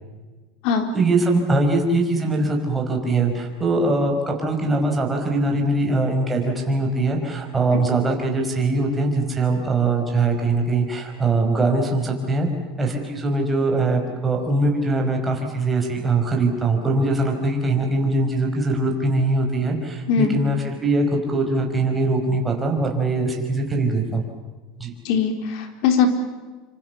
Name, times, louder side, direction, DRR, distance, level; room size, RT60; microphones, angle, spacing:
voice 1, 0.9-12.5 12.8-24.2 24.8-24.9, right 2 dB, 10° right, 1 dB, 5.2 m, -22 dB
voice 2, 25.0-26.1, left 6 dB, 60° left, 6 dB, 4.1 m, -20 dB
27.0 x 26.0 x 7.1 m, 1.3 s
supercardioid pair, 140°, 0 cm